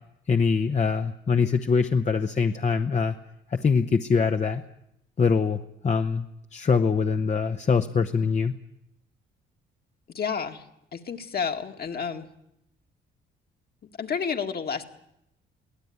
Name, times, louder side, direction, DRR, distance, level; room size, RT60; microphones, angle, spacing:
voice 1, 0.3-3.1 3.5-4.6 5.2-6.3 6.5-8.6, left 5 dB, 35° left, 6 dB, 0.9 m, -23 dB
voice 2, 10.1-10.6 10.9-12.3 14.0-14.8, left 6 dB, 50° left, 5 dB, 2.0 m, -30 dB
23.0 x 16.5 x 9.5 m, 0.81 s
cardioid pair, 90°, 20 cm